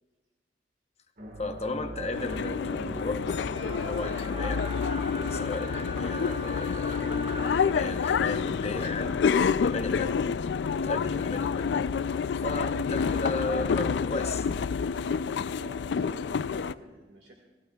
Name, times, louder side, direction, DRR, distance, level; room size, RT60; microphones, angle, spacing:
sound 1, 1.2-10.1 10.4-10.6 12.7-12.8, equal, 50° right, 1.6 m, -45 dB
voice 1, 1.4-3.2 3.8-4.7 5.3-7.0 7.6-9.2 9.6-10.3 10.8-11.9 12.4-14.4, left 2 dB, 35° left, 7 dB, 0.9 m, -35 dB
sound 2, 1.4-10.6, right 1 dB, 30° right, 0.8 m, -43 dB
sound 3, 2.1-16.7, left 6 dB, 70° left, 0.4 m, -28 dB
voice 2, 15.6-17.3, right 2 dB, 70° right, 0 dB, 1.9 m, -49 dB
28.5 x 15.5 x 2.3 m, 1.3 s
head